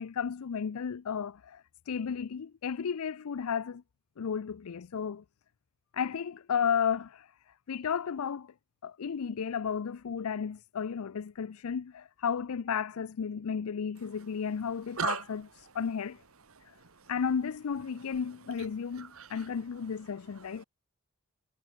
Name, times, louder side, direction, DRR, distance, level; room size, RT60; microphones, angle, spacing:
voice 1, 0.0-3.8 4.2-5.2 5.9-7.3 7.7-8.5 8.8-15.4 15.7-16.2 17.1-20.6, left 7 dB, 85° left, 0.5 m, -33 dB
voice 2, 16.6-17.1 19.0-19.5, right 6 dB, 75° right, 1.5 m, -36 dB
head